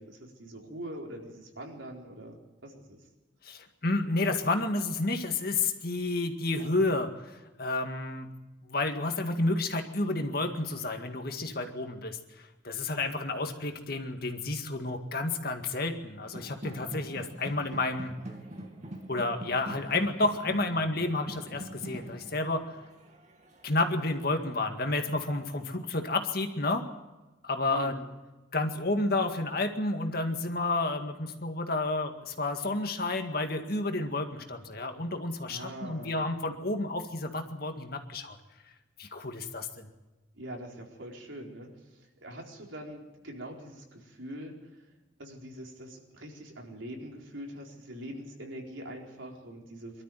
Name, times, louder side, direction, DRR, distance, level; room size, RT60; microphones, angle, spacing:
voice 1, 0.0-3.0 27.7-28.0 35.5-36.2 40.3-41.7 42.2-44.8 45.2-50.0, right 1 dB, 80° right, 0 dB, 4.3 m, -43 dB
voice 2, 3.4-8.3 8.6-12.2 12.6-18.1 19.1-22.8 23.6-26.8 27.4-27.9 28.5-38.4 39.0-39.9, left 2 dB, 50° left, 5 dB, 2.0 m, -30 dB
sound 1, 16.2-25.1, right 1 dB, 35° right, 2.3 m, -44 dB
23.5 x 13.0 x 9.2 m, 1.1 s
head